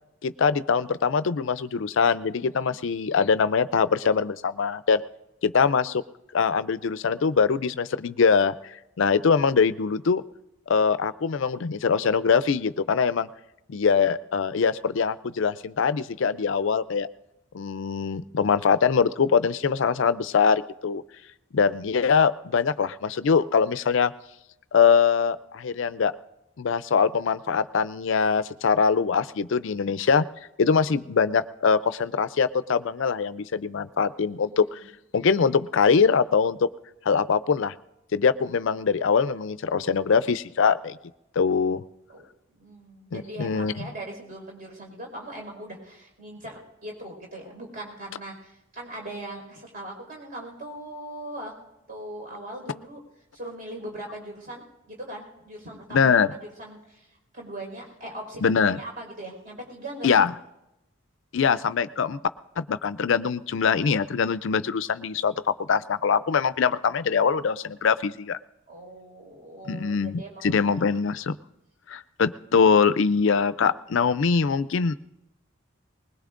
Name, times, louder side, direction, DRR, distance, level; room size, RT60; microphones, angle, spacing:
voice 1, 0.2-5.0 5.4-6.0 6.3-8.5 9.0-10.2 10.7-13.3 13.7-17.1 17.5-21.0 21.5-24.1 24.7-26.1 26.6-30.2 30.6-34.8 35.1-36.7 37.1-37.7 38.1-41.0 41.4-41.8 43.1-43.7 55.9-56.3 58.4-58.8 60.0-60.3 61.3-62.2 62.6-68.4 69.7-71.4 71.9-74.9, left 6 dB, 65° left, 14 dB, 0.4 m, -23 dB
voice 2, 2.5-2.8 34.4-34.6 42.1-42.3 42.5-51.5 51.9-53.0 53.3-56.1 56.4-60.1 68.7-70.8, right 1 dB, 40° right, 0 dB, 4.7 m, -40 dB
20.5 x 20.5 x 2.5 m, 0.91 s
head